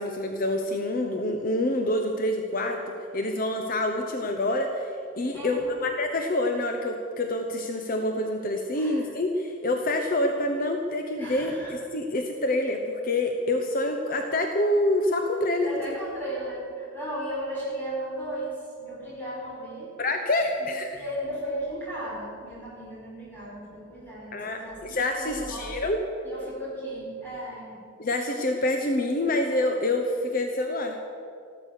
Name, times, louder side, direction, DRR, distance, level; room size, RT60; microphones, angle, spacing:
voice 1, 0.0-4.9 5.2-15.9 20.0-21.0 24.3-26.0 28.0-31.0, left 1 dB, 45° left, 4 dB, 0.9 m, -27 dB
voice 2, 5.3-5.8 8.7-9.1 11.2-11.7 15.6-19.9 20.6-25.8 26.2-27.8, right 1 dB, 10° left, -7 dB, 4.8 m, -36 dB
14.5 x 12.0 x 6.5 m, 2.5 s
head